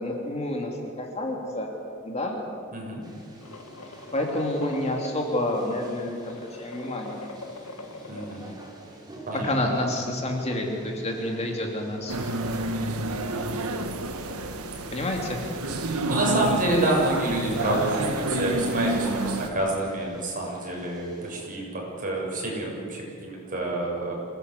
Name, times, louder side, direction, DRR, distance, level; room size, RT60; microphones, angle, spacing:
voice 1, 0.0-1.7 2.0-2.4 3.8-7.2 9.3-12.2 14.9-15.4, left 1 dB, 30° left, 1 dB, 2.9 m, -29 dB
voice 2, 2.7-3.0 8.1-8.4 9.3-9.5 15.7-24.2, right 2 dB, 40° right, -2 dB, 7.6 m, -28 dB
sound 1, 3.0-21.5, right 1 dB, 20° right, 4.5 m, -47 dB
sound 2, 3.4-8.5, left 3 dB, 70° left, 1.8 m, -42 dB
sound 3, 12.1-19.5, right 2 dB, 75° right, 1.7 m, -29 dB
26.5 x 18.0 x 8.3 m, 2.4 s
head